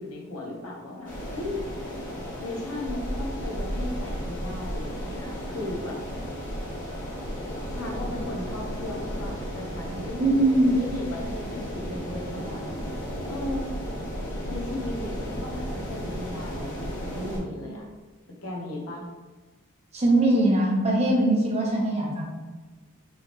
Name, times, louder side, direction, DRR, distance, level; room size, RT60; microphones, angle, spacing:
voice 1, 0.0-1.6 2.4-6.0 7.7-12.8 13.3-13.7 14.5-17.8 18.4-19.1, left 1 dB, 80° left, -2 dB, 1.1 m, -36 dB
sound 1, 1.0-17.4, equal, 40° left, 1.3 m, -34 dB
voice 2, 10.2-10.8 19.9-22.3, right 1 dB, 30° right, -2 dB, 0.9 m, -21 dB
4.6 x 3.4 x 3.1 m, 1.3 s
head